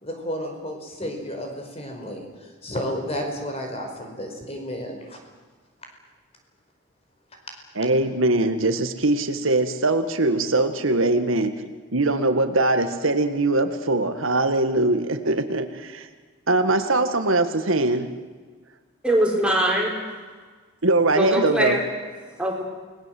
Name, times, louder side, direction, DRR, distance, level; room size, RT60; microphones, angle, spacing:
voice 1, 0.0-5.2, equal, 30° left, 3 dB, 4.9 m, -32 dB
voice 2, 7.8-11.5 11.9-16.1 16.5-18.1 20.8-21.8, right 2 dB, 80° right, 8 dB, 1.8 m, -22 dB
voice 3, 19.0-20.1 21.2-21.8 22.4-22.6, right 1 dB, 5° right, -1 dB, 5.0 m, -22 dB
29.0 x 20.0 x 7.8 m, 1.4 s
head